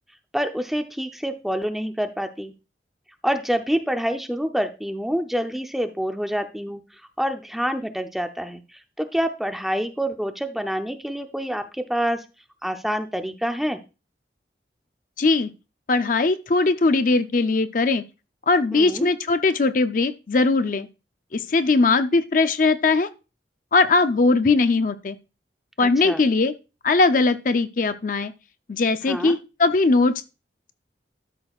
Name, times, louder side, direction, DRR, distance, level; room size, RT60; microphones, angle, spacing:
voice 1, 0.3-2.5 3.2-6.8 7.2-8.6 9.0-12.2 12.6-13.8 18.7-19.1 25.8-26.2 29.1-29.4, equal, ahead, 0.6 m, -27 dB
voice 2, 15.2-15.5 15.9-18.0 18.5-20.9 21.3-23.1 23.7-25.2 25.8-26.5 26.8-28.3 28.7-30.1, left 3 dB, 50° left, 0.5 m, -20 dB
12.5 x 6.2 x 2.4 m
head